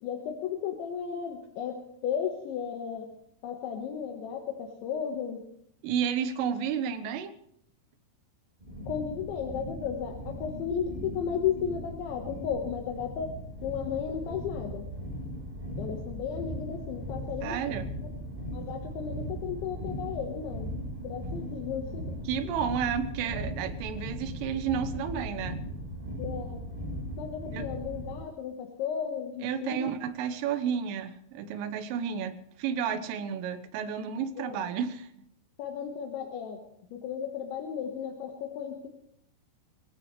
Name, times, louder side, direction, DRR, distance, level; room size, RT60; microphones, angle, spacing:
voice 1, 0.0-3.1 3.4-5.4 8.9-13.4 13.6-14.9 15.8-17.6 18.5-20.7 21.0-22.2 26.2-26.6 27.2-29.9 34.4-34.6 35.6-36.6 36.9-38.9, left 8 dB, 75° left, 1 dB, 3.7 m, -34 dB
voice 2, 5.8-7.3 17.4-17.9 22.3-25.6 27.5-27.7 29.4-35.1, right 7 dB, 90° right, 9 dB, 3.7 m, -31 dB
sound 1, 8.6-28.1, equal, 10° right, 3.7 m, -38 dB
24.0 x 17.5 x 3.3 m, 0.71 s
omnidirectional pair, 5.6 m